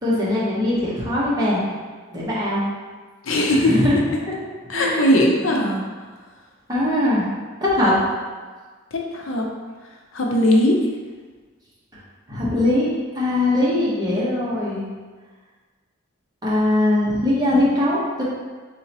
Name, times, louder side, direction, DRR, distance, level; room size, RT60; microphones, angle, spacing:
voice 1, 0.0-1.6 2.1-2.6 3.6-3.9 4.7-5.1 6.7-7.3 7.6-7.9 12.3-12.9 13.1-14.8 16.4-18.2, left 1 dB, 20° right, -8 dB, 1.1 m, -21 dB
voice 2, 3.2-3.7 4.7-5.8 8.9-9.5 10.1-10.8, left 1 dB, 75° left, 0 dB, 0.6 m, -19 dB
4.3 x 3.7 x 2.9 m, 1.4 s
head